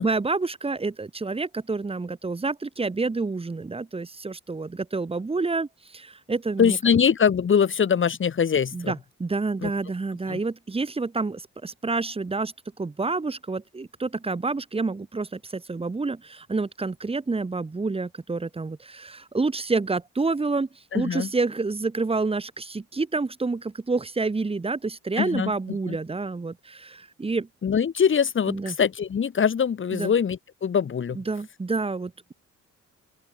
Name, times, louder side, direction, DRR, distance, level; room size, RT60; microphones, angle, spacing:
voice 1, 0.0-5.7 5.9-6.8 8.7-12.5 12.8-20.7 20.9-27.5 28.5-28.7 29.9-30.1 31.1-32.3, right 3 dB, 20° right, 1.3 m, -28 dB
voice 2, 6.6-8.9 9.6-9.7 10.3-10.4 20.9-21.3 25.2-25.5 25.9-26.0 27.6-31.2, left 7 dB, 40° left, 1.8 m, -23 dB
open air
cardioid pair, 90°, 30 cm